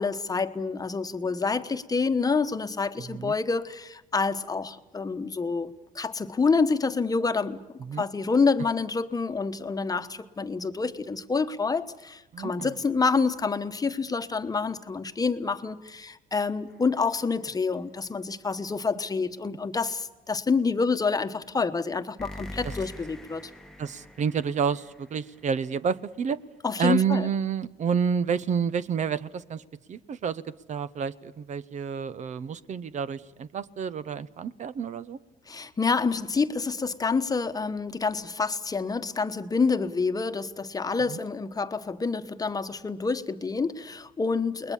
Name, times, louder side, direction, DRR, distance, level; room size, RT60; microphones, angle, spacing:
voice 1, 0.0-7.6 8.0-23.5 26.6-27.3 35.5-44.7, left 4 dB, 20° left, 9 dB, 1.2 m, -27 dB
voice 2, 12.3-12.7 22.6-22.7 23.8-26.4 26.8-29.6 29.9-30.4 30.7-35.2 41.1-41.2, right 6 dB, 45° right, 16 dB, 0.8 m, -29 dB
sound 1, 16.7-17.4 22.2-25.8, left 1 dB, 5° left, 1.2 m, -44 dB
29.0 x 21.0 x 7.2 m, 1.0 s
cardioid pair, 110°, 17 cm